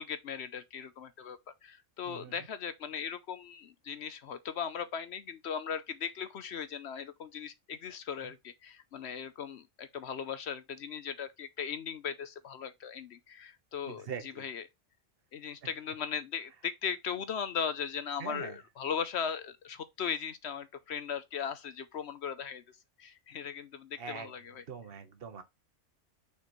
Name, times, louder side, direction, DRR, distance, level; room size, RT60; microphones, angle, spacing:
voice 1, 0.0-14.7 15.3-22.6 23.0-24.6, left 7 dB, 65° left, 0.9 m, -38 dB
voice 2, 2.0-2.5 8.2-8.3 13.9-14.5 15.6-15.7 18.2-18.6 24.0-24.3 24.7-25.4, right 6 dB, 50° right, 1.3 m, -43 dB
6.6 x 5.2 x 3.1 m
omnidirectional pair, 1.3 m